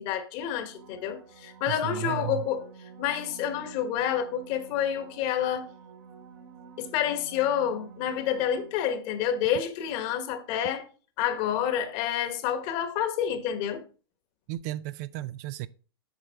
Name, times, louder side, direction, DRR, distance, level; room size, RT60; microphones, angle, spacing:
voice 1, 0.0-2.7 3.0-5.7 6.8-10.8 11.2-13.8, left 9 dB, 45° left, 1.3 m, -28 dB
sound 1, 0.6-9.2 14.5-14.6, right 6 dB, 75° right, 2.2 m, -49 dB
voice 2, 1.7-2.4 14.5-15.7, right 15 dB, 45° right, 0.4 m, -34 dB
8.1 x 5.6 x 3.5 m
hypercardioid pair, 130°, 13 cm